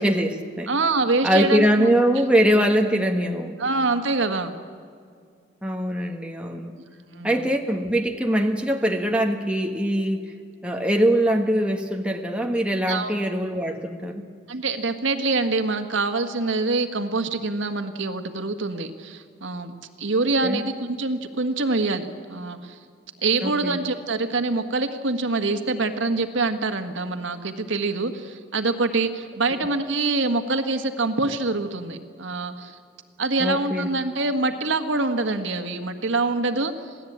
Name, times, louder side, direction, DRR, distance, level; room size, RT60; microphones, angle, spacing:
voice 1, 0.0-0.7 1.2-3.6 5.6-6.7 7.2-10.3 10.6-14.3 20.4-20.6 23.4-23.8 33.4-33.9, equal, 5° right, 2 dB, 1.3 m, -22 dB
voice 2, 0.7-1.9 3.6-4.5 7.1-7.4 12.9-13.1 14.5-19.7 20.0-22.7 23.2-32.8 33.2-36.7, right 3 dB, 80° right, 7 dB, 1.6 m, -25 dB
27.0 x 17.0 x 8.7 m, 2.2 s
head